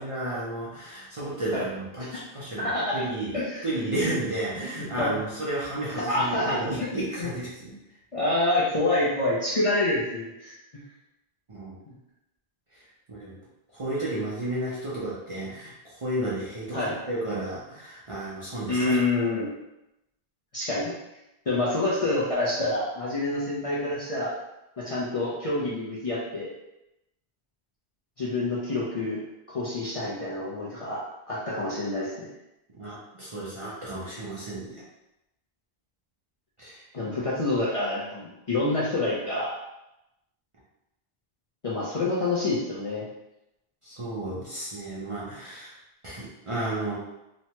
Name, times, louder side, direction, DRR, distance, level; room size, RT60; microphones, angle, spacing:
voice 1, 0.0-3.3 3.6-7.7 11.5-11.7 13.1-13.3 13.7-19.0 32.7-34.8 36.6-36.8 43.8-45.7 46.0-47.0, right 1 dB, 40° right, -8 dB, 0.5 m, -32 dB
voice 2, 2.6-3.0 3.3-3.6 4.8-5.2 5.9-6.9 7.2-7.3 8.1-10.6 11.9-12.0 16.7-17.0 18.6-19.5 20.5-20.9 21.5-24.3 24.8-26.5 28.2-29.2 29.5-32.3 36.9-39.6 41.6-43.1, left 2 dB, 45° left, -7 dB, 0.5 m, -27 dB
3.0 x 2.1 x 2.8 m, 0.90 s
omnidirectional pair, 1.1 m